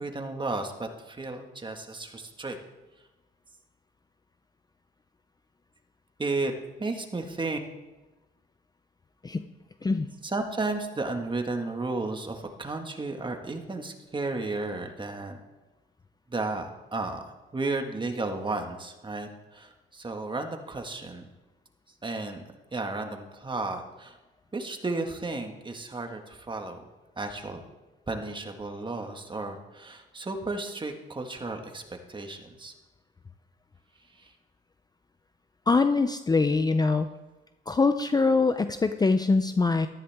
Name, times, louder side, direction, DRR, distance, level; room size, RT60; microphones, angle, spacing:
voice 1, 0.0-2.6 6.2-6.5 6.8-7.6 10.2-15.4 16.3-21.3 22.0-22.4 22.7-24.2 24.5-26.8 27.2-27.6 28.1-31.8 32.1-32.7 34.2-34.3, right 3 dB, 25° right, 4 dB, 1.7 m, -33 dB
voice 2, 35.7-37.1 37.7-39.9, left 4 dB, 20° left, 9 dB, 0.5 m, -23 dB
14.0 x 13.5 x 3.6 m, 1.1 s
cardioid pair, 90°, 20 cm